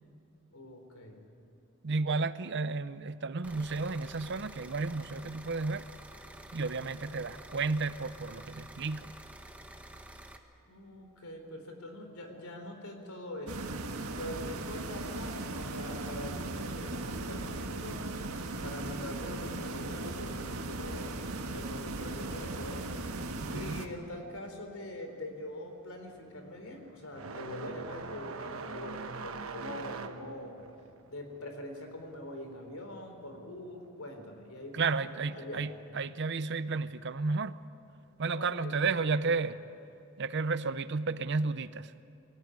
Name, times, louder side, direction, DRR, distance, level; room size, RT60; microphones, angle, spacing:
voice 1, 0.5-1.2 10.7-18.0 18.6-21.2 21.5-22.9 23.5-30.6 31.1-35.0 35.3-35.7 38.3-38.8 39.0-39.3, left 1 dB, 80° left, 3.9 m, -43 dB
voice 2, 1.8-5.9 6.5-9.2 23.4-23.8 34.7-37.6 38.2-39.6 40.2-41.9, right 4 dB, 55° right, 0.7 m, -32 dB
sound 1, 3.4-10.4, right 1 dB, 5° right, 1.2 m, -50 dB
sound 2, 13.5-23.9, right 2 dB, 90° right, 1.6 m, -38 dB
sound 3, 24.7-24.9 25.2-33.5 33.8-34.8 35.8-35.9 36.7-36.8 38.6-38.7, right 4 dB, 70° right, 1.1 m, -43 dB
23.0 x 17.5 x 9.7 m
head